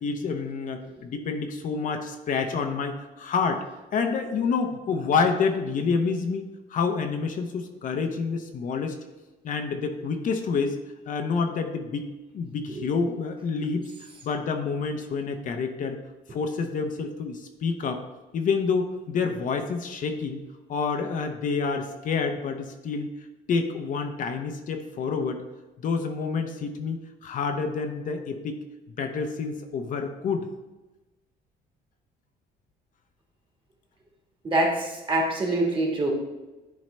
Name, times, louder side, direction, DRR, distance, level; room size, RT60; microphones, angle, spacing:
voice 1, 0.0-3.6 3.9-9.0 9.4-10.8 11.1-12.1 12.3-13.9 14.2-16.0 16.3-18.0 18.3-20.4 20.7-23.1 23.5-25.4 25.8-28.6 29.0-30.5, left 5 dB, 50° left, 5 dB, 0.7 m, -28 dB
voice 2, 34.4-36.1, right 2 dB, 30° right, 0 dB, 1.7 m, -24 dB
10.5 x 3.9 x 3.3 m, 1.1 s
cardioid pair, 110°, 17 cm